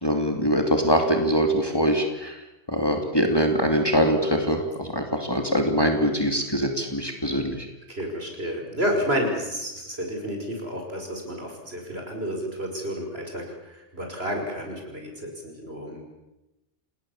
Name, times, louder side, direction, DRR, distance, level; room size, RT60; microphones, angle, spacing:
voice 1, 0.0-2.3 2.7-7.5, equal, 20° left, 4 dB, 2.8 m, -23 dB
voice 2, 7.9-16.0, equal, 55° right, 2 dB, 5.9 m, -30 dB
28.5 x 19.0 x 7.3 m, 0.94 s
omnidirectional pair, 1.3 m